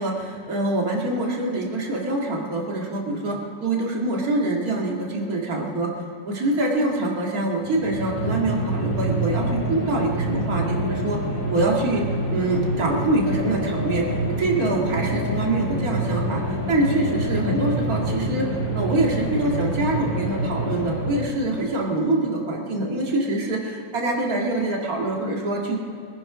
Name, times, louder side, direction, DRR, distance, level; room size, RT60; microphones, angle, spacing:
voice 1, 0.0-5.9 6.3-11.2 11.5-12.0 12.3-16.4 16.7-18.5 18.7-25.8, right 2 dB, 50° right, -1 dB, 2.4 m, -25 dB
sound 1, 7.6-21.4, right 1 dB, 75° right, 4.3 m, -27 dB
22.0 x 10.5 x 4.9 m, 2.6 s
omnidirectional pair, 2.0 m